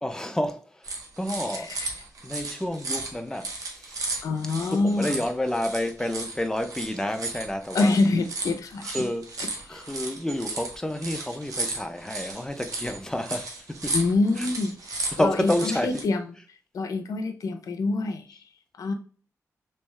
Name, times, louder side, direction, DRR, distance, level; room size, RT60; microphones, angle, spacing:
voice 1, 0.0-1.7 2.2-4.1 4.7-8.0 8.8-9.2 9.7-14.0 14.4-14.5 15.1-15.9, left 1 dB, 10° left, 0.6 m, -30 dB
sound 1, 0.8-16.0, right 3 dB, 80° right, 0.9 m, -35 dB
voice 2, 1.6-1.9 4.2-5.1 7.7-9.1 9.7-9.9 13.9-16.2 16.7-18.4 18.8-18.9, left 3 dB, 85° left, 0.6 m, -26 dB
3.4 x 3.2 x 3.2 m
cardioid pair, 80°, 6 cm